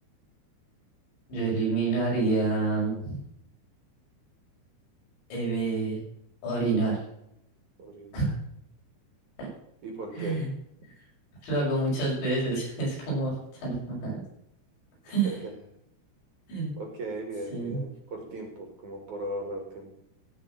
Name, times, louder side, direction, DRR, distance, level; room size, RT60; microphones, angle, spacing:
voice 1, 1.3-3.2 5.3-6.0 6.4-7.0 8.1-8.3 9.4-9.5 10.1-10.5 11.4-14.2 15.0-15.4 16.5-16.7 17.5-17.8, right 3 dB, 70° left, -4 dB, 8.5 m, -28 dB
voice 2, 7.8-8.3 9.8-10.5 15.2-15.5 16.8-19.9, right 2 dB, 50° right, 2 dB, 3.1 m, -37 dB
16.5 x 6.0 x 6.0 m, 0.77 s
omnidirectional pair, 5.3 m